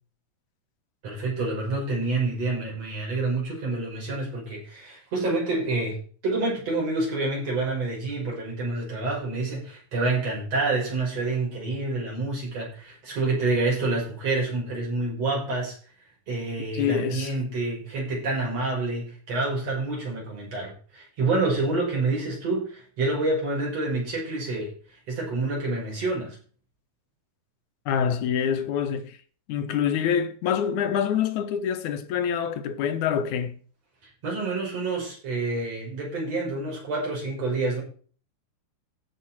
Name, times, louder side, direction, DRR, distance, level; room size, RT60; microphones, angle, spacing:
voice 1, 1.0-6.0 6.2-15.8 16.3-24.7 25.1-26.4 34.2-37.8, right 3 dB, 55° right, 7.0 m, -28 dB
voice 2, 16.7-17.3 27.9-29.2 29.5-33.6, left 8 dB, 80° left, 2.6 m, -26 dB
16.0 x 6.2 x 4.4 m
omnidirectional pair, 3.4 m